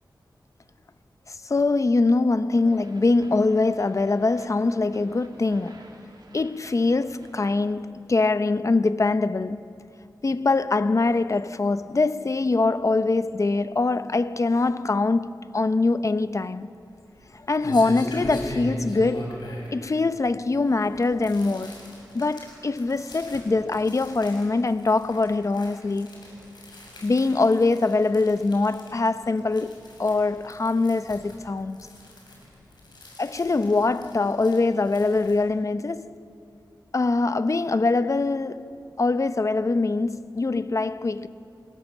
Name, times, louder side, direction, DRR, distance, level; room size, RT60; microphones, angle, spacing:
voice 1, 1.3-5.9 6.3-9.6 10.2-16.7 17.3-19.4 19.7-21.8 22.1-26.2 27.0-31.8 33.2-36.2 36.9-41.3, left 3 dB, 45° left, 0.7 m, -23 dB
sound 1, 2.5-7.8, right 2 dB, 65° right, 3.0 m, -52 dB
sound 2, 16.8-35.4, equal, 70° left, 6.7 m, -41 dB
28.5 x 17.5 x 7.3 m
wide cardioid pair, 75°, 8 cm